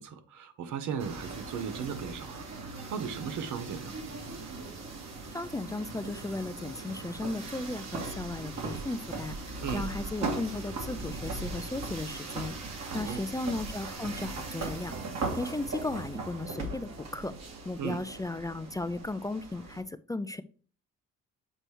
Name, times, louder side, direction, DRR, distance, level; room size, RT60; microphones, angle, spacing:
voice 1, 0.0-4.0 9.6-9.9 12.9-13.3 17.8-18.0, right 7 dB, 80° right, 1.1 m, -37 dB
sound 1, 1.0-19.8, right 3 dB, 60° right, 1.8 m, -39 dB
voice 2, 5.3-12.5 12.9-14.9 15.3-17.3 17.7-20.4, left 2 dB, 10° left, 0.3 m, -35 dB
7.6 x 3.3 x 4.6 m
cardioid pair, 90°, 30 cm